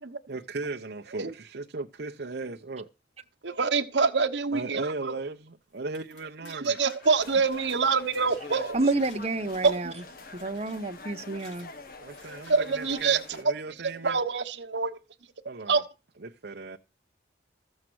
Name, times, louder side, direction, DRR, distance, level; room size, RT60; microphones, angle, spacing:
voice 1, 0.3-2.9 4.5-6.8 12.0-14.2 15.4-15.8 16.2-16.8, right 3 dB, 60° right, 0.7 m, -37 dB
voice 2, 3.4-5.2 6.5-8.9 9.6-9.9 12.5-13.2 13.8-15.0 15.7-15.8, right 4 dB, 80° right, 1.1 m, -26 dB
sound 1, 5.7-9.2 9.5-10.0 10.4-10.8 11.3-11.7 12.2-12.6, left 2 dB, 80° left, 6.4 m, -53 dB
sound 2, 7.0-13.4, left 3 dB, 55° left, 1.3 m, -45 dB
voice 3, 8.7-9.9 10.3-11.7, right 2 dB, 35° right, 1.0 m, -29 dB
14.0 x 7.4 x 6.2 m
head